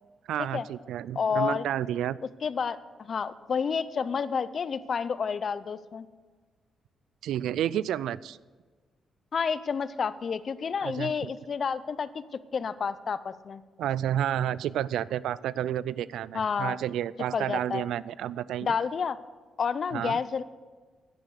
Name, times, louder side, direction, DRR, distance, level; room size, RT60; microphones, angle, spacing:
voice 1, 0.3-2.2 7.2-8.4 10.8-11.3 13.8-18.7 19.9-20.2, right 11 dB, 90° right, 20 dB, 0.3 m, -30 dB
voice 2, 1.2-1.7 2.4-6.1 9.3-12.2 12.5-13.6 16.3-16.8 17.3-17.8 18.6-19.2 19.6-20.4, left 6 dB, 45° left, 15 dB, 0.5 m, -30 dB
10.5 x 10.0 x 6.5 m, 1.4 s
cardioid pair, 125°, 0 cm